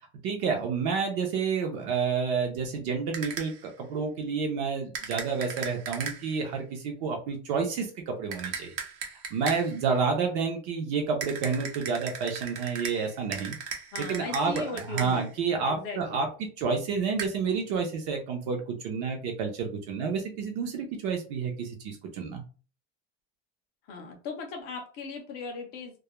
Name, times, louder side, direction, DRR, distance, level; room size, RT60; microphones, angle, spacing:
voice 1, 0.2-8.7 9.3-13.6 14.0-16.3 16.6-22.4, right 5 dB, 50° right, 2 dB, 0.5 m, -29 dB
sound 1, 3.1-3.7 4.9-6.4 8.3-9.8 11.2-15.3 17.2-17.3, right 6 dB, 85° right, 0.8 m, -37 dB
voice 2, 13.9-15.3 15.7-16.2 23.9-26.0, left 4 dB, 30° left, 2 dB, 0.4 m, -38 dB
2.3 x 2.0 x 2.9 m, 0.36 s
cardioid pair, 180°, 33 cm